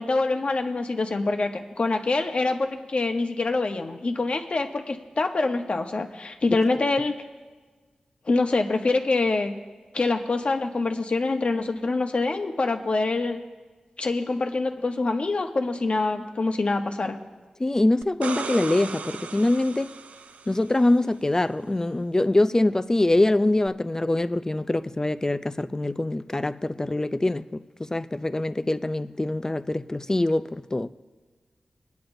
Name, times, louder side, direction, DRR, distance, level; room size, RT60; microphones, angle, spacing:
voice 1, 0.0-7.1 8.3-9.5 9.9-13.4 14.0-17.2, left 3 dB, 55° left, 1.0 m, -25 dB
voice 2, 17.6-19.9 20.5-30.9, left 2 dB, 25° left, 0.4 m, -24 dB
sound 1, 18.0-20.8 23.7-23.8, right 5 dB, 85° right, 0.3 m, -36 dB
21.5 x 9.3 x 2.6 m
wide cardioid pair, 60°, 2 cm